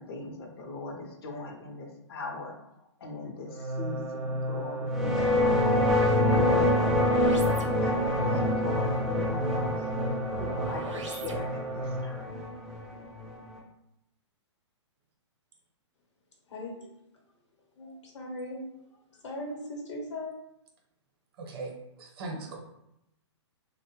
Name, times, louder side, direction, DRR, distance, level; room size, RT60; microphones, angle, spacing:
voice 1, 0.0-2.6 3.0-9.9 10.3-12.4, left 2 dB, 55° left, 2 dB, 0.6 m, -40 dB
sound 1, 3.5-12.3, right 1 dB, 85° right, 0.4 m, -34 dB
sound 2, 4.9-13.6, left 1 dB, ahead, 0.3 m, -26 dB
voice 2, 16.5-16.9 17.8-18.6 19.2-20.3, left 1 dB, 75° left, -1 dB, 0.9 m, -38 dB
voice 3, 21.4-21.7 22.0-22.6, right 3 dB, 55° right, 0 dB, 0.7 m, -38 dB
2.1 x 2.0 x 3.0 m, 0.82 s
hypercardioid pair, 125°, 15 cm